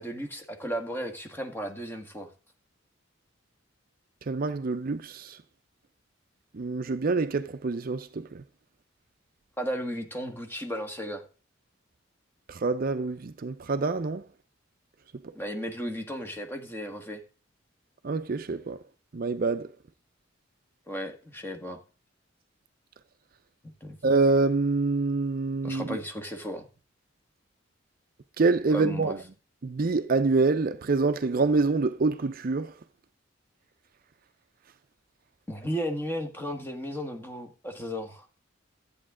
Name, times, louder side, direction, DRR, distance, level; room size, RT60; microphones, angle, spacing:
voice 1, 0.0-2.3 9.6-11.2 15.3-17.2 20.9-21.8 23.6-24.0 25.6-26.7 28.7-29.2 35.5-38.2, equal, 10° left, 1.7 m, -34 dB
voice 2, 4.3-5.4 6.5-8.4 12.5-14.2 18.0-18.8 19.1-19.7 24.0-26.0 28.4-29.2 29.6-32.7, right 3 dB, 45° right, 0.5 m, -26 dB
13.5 x 8.5 x 3.7 m
head